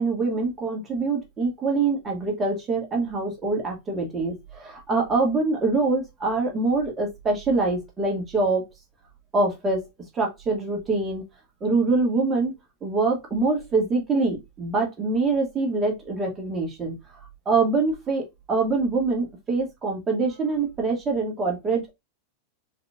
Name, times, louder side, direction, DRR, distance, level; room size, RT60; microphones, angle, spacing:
voice 1, 0.0-8.6 9.3-9.8 10.2-11.2 11.6-12.5 12.8-16.9 17.5-21.9, right 3 dB, 20° right, 1.9 m, -24 dB
4.8 x 4.1 x 2.4 m
figure-of-eight pair, 90°, 0 cm